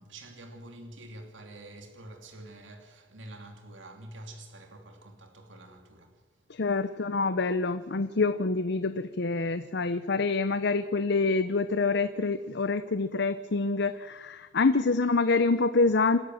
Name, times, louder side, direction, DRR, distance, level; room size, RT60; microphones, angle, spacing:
voice 1, 0.0-6.3, right 1 dB, 85° right, 2.9 m, -47 dB
voice 2, 6.5-16.2, left 3 dB, 65° left, 0.8 m, -26 dB
27.5 x 13.5 x 7.7 m
head